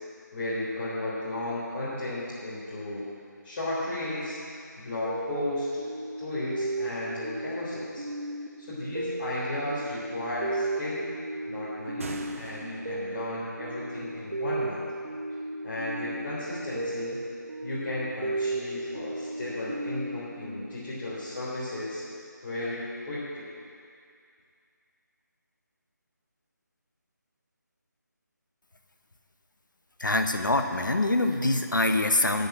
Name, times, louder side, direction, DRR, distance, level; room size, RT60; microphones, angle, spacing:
voice 1, 0.3-3.0 3.4-4.4 4.8-5.7 6.2-8.1 8.6-11.0 11.5-14.8 15.6-17.2 17.6-22.0 22.4-23.5, left 1 dB, 35° left, -10 dB, 3.6 m, -34 dB
sound 1, 5.0-21.4, right 2 dB, 75° right, 1.0 m, -35 dB
sound 2, 11.8-13.1, right 3 dB, 45° right, 1.1 m, -42 dB
voice 2, 30.0-32.5, left 2 dB, 80° left, 6 dB, 1.2 m, -24 dB
13.0 x 6.7 x 8.9 m, 2.3 s
figure-of-eight pair, 160°, 10 cm